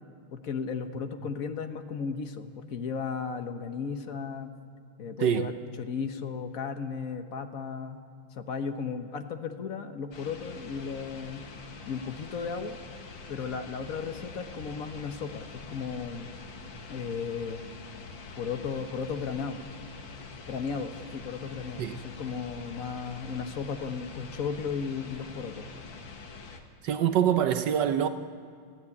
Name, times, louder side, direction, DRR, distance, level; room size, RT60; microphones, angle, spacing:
voice 1, 0.3-4.5 5.0-8.0 8.3-11.5 11.9-12.8 13.3-16.3 16.9-17.6 18.4-19.6 20.5-25.7, left 6 dB, 45° left, 1.3 m, -35 dB
sound 1, 10.1-26.6, left 4 dB, 60° left, 2.3 m, -45 dB
voice 2, 26.8-28.1, right 9 dB, 65° right, 1.2 m, -25 dB
29.5 x 15.5 x 8.5 m
omnidirectional pair, 2.4 m